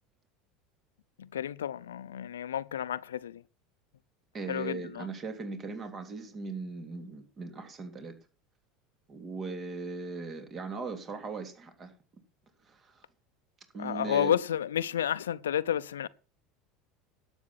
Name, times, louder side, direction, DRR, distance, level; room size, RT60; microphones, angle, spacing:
voice 1, 1.3-3.4 4.5-5.1 13.8-16.1, left 10 dB, 80° left, 0.5 m, -31 dB
voice 2, 4.3-8.1 9.1-11.9 12.7-13.0 13.7-14.4, right 4 dB, 35° right, 3.3 m, -39 dB
12.0 x 8.0 x 6.0 m
hypercardioid pair, 80°, 0 cm